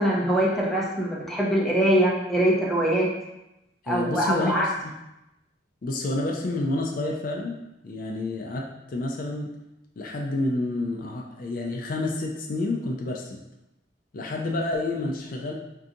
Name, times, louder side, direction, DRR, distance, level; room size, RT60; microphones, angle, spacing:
voice 1, 0.0-3.1 3.9-4.7, right 1 dB, ahead, -5 dB, 0.6 m, -23 dB
voice 2, 3.8-4.9 5.8-7.6 7.8-9.5 10.0-13.4 14.1-15.5, left 2 dB, 50° left, 0 dB, 0.4 m, -29 dB
4.5 x 2.7 x 2.5 m, 0.90 s
head